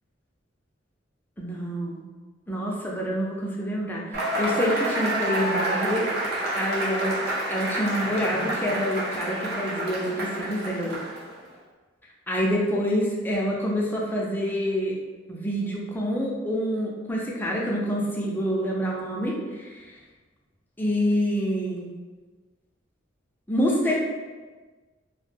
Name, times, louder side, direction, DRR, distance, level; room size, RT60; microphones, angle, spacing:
voice 1, 1.4-2.0 2.5-6.1 6.5-7.2 7.5-11.0 12.3-14.9 15.3-19.9 20.8-21.9 23.5-24.0, equal, 10° left, -3 dB, 0.4 m, -27 dB
Cheering / Applause / Crowd, 4.1-11.4, right 1 dB, 55° right, 0.7 m, -29 dB
2.3 x 2.1 x 3.2 m, 1.3 s
head